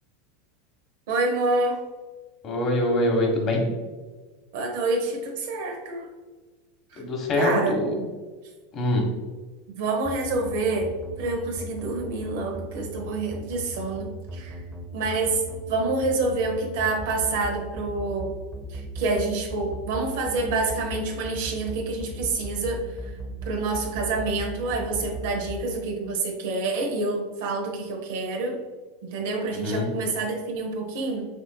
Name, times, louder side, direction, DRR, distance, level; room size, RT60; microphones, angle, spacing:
voice 1, 1.1-1.8 4.5-6.1 7.3-7.7 9.8-10.9 11.2-14.6 14.9-15.4 15.7-18.3 18.7-22.8 23.5-28.6 29.0-31.3, right 3 dB, 70° right, 2 dB, 0.9 m, -27 dB
voice 2, 2.4-3.7 7.0-8.0 8.7-9.0 29.5-29.9, left 1 dB, 40° left, 1 dB, 1.3 m, -24 dB
sound 1, 10.0-25.6, right 1 dB, 10° right, 1.2 m, -36 dB
6.7 x 2.5 x 2.3 m, 1.3 s
hypercardioid pair, 95°, 0 cm